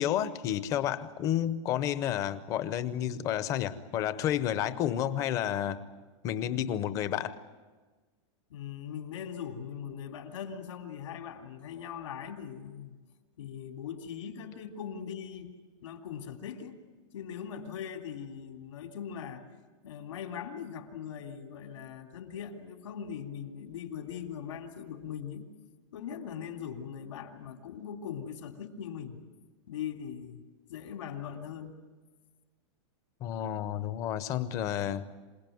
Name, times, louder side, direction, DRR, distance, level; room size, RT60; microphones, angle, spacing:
voice 1, 0.0-5.8 6.2-7.4 33.2-35.1, left 11 dB, 20° left, 14 dB, 0.7 m, -31 dB
voice 2, 8.5-12.9 13.4-16.8 17.1-19.5 19.8-25.5 25.9-29.2 29.7-31.8, left 8 dB, 75° left, 4 dB, 3.1 m, -40 dB
27.0 x 18.0 x 9.3 m, 1.4 s
supercardioid pair, 180°, 16 cm